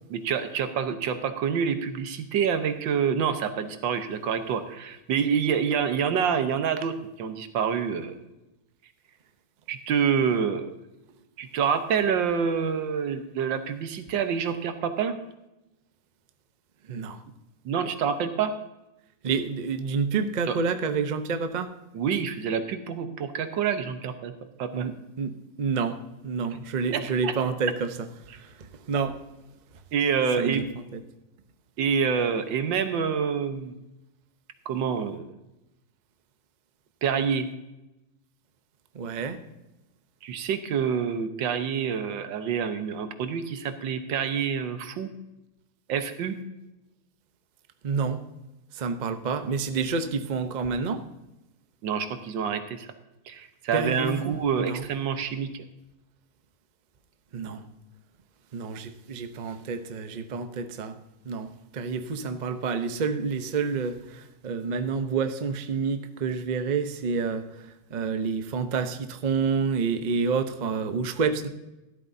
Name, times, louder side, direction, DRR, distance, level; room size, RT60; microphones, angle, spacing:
voice 1, 0.1-8.2 9.7-10.7 11.4-15.2 17.6-18.5 20.5-20.6 21.9-24.3 24.6-24.9 26.9-27.3 29.9-30.6 31.8-33.8 34.6-35.3 37.0-37.5 40.2-45.1 45.9-46.4 51.8-52.9 53.3-55.5, right 7 dB, 85° right, 8 dB, 1.7 m, -27 dB
voice 2, 16.9-17.2 19.2-21.7 24.7-24.9 25.2-25.3 25.6-26.0 26.2-27.9 28.3-28.5 28.9-29.2 30.4-30.6 38.9-39.4 47.8-48.2 48.7-51.0 53.7-54.8 57.3-57.6 58.5-61.0 61.2-71.5, right 5 dB, 55° right, 8 dB, 0.5 m, -28 dB
13.5 x 12.5 x 2.7 m, 0.97 s
omnidirectional pair, 2.0 m